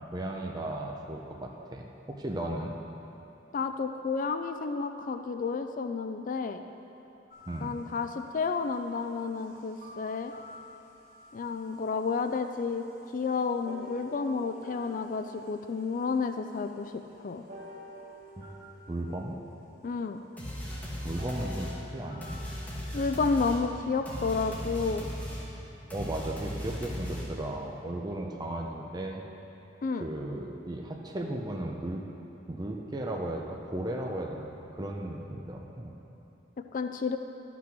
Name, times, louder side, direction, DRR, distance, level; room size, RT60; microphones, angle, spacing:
voice 1, 0.0-1.8 2.2-2.8 7.5-7.8 18.4-18.5 18.9-19.4 21.0-22.4 25.9-29.2 29.9-32.0 32.5-35.9, right 1 dB, 20° right, 0 dB, 0.6 m, -35 dB
voice 2, 3.5-6.6 7.6-10.3 11.3-12.8 13.1-16.9 17.2-17.4 19.8-20.2 22.9-25.1 29.8-30.0 36.7-37.2, left 4 dB, 45° left, 7 dB, 0.4 m, -31 dB
sound 1, 7.3-8.4 9.8-11.5 12.2-12.3 13.6-16.5 17.5-20.1 21.2-24.6, left 1 dB, 45° right, 2.7 m, -49 dB
sound 2, 20.4-27.6, equal, 10° left, 1.9 m, -37 dB
12.0 x 6.0 x 6.0 m, 3.0 s
head